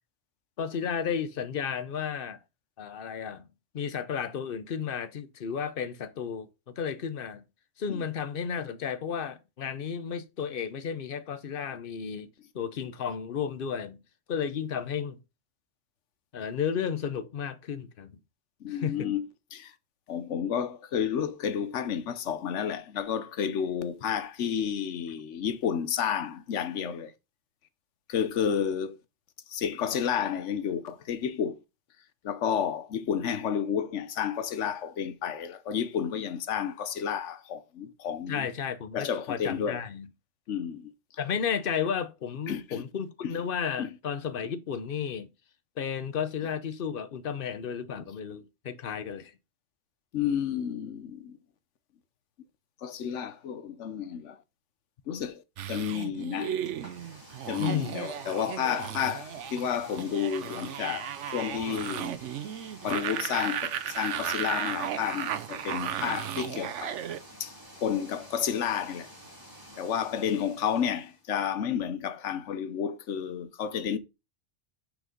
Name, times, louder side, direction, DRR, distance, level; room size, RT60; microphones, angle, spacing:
voice 1, 0.6-2.4 2.8-3.5 3.7-7.4 7.8-12.3 12.5-14.0 14.3-15.2 16.3-18.1 18.7-19.1 38.3-40.1 41.2-45.3 45.8-49.3 57.6-58.0, left 7 dB, 55° left, 0.9 m, -33 dB
voice 2, 18.6-19.7 20.1-27.1 28.1-29.0 29.5-31.6 32.2-38.5 38.9-39.8 40.5-40.9 42.5-42.8 43.2-43.3 43.8-43.9 50.1-51.4 52.8-54.4 55.1-55.4 55.7-56.6 57.5-62.2 62.8-67.0 67.4-67.5 67.8-69.1 69.8-74.0, left 8 dB, 90° left, 1.1 m, -31 dB
sound 1, 55.6-67.2, right 10 dB, 90° right, 1.0 m, -35 dB
sound 2, 56.6-71.2, right 1 dB, 20° right, 2.6 m, -50 dB
6.3 x 5.1 x 5.1 m
omnidirectional pair, 1.2 m